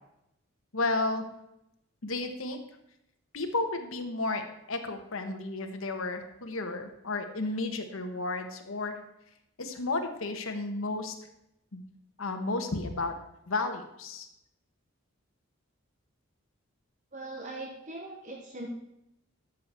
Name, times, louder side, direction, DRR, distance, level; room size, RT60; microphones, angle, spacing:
voice 1, 0.7-1.2 2.0-2.6 3.3-9.0 9.6-11.2 11.7-11.8 12.2-13.1 13.5-14.3, left 2 dB, 75° left, 5 dB, 1.2 m, -32 dB
voice 2, 17.1-18.7, right 2 dB, 35° right, 1 dB, 0.9 m, -40 dB
12.5 x 6.6 x 4.4 m, 0.82 s
head